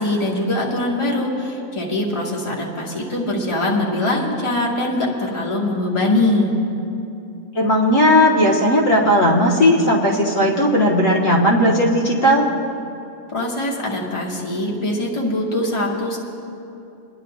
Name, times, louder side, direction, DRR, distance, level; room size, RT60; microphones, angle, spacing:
voice 1, 0.0-6.5 13.3-16.2, left 1 dB, 20° left, -3 dB, 1.5 m, -22 dB
voice 2, 7.6-12.4, equal, 70° left, -2 dB, 1.8 m, -16 dB
29.5 x 10.5 x 2.4 m, 2.7 s
omnidirectional pair, 1.4 m